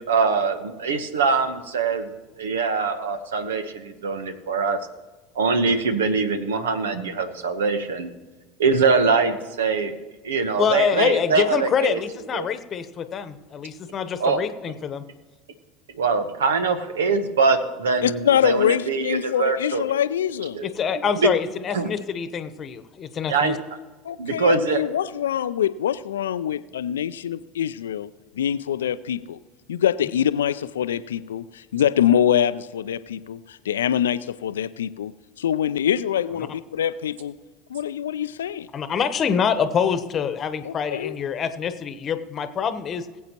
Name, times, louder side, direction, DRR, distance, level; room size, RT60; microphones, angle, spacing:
voice 1, 0.1-2.1 2.4-4.8 5.4-8.1 8.6-9.9 10.2-12.0 12.3-12.5 14.2-14.4 15.9-19.8 20.5-20.7 21.2-21.3 21.7-21.9 23.3-23.6 24.2-24.8, right 4 dB, 80° right, 1.0 m, -23 dB
voice 2, 10.6-15.0 20.6-23.6 36.4-36.5 38.7-43.1, left 7 dB, 35° left, 1.0 m, -25 dB
voice 3, 18.0-20.6 24.0-28.1 28.4-29.4 29.7-35.1 35.4-37.3 37.7-38.7 40.6-41.2, left 9 dB, 80° left, 0.4 m, -24 dB
21.0 x 8.2 x 3.0 m
hypercardioid pair, 75°, 0 cm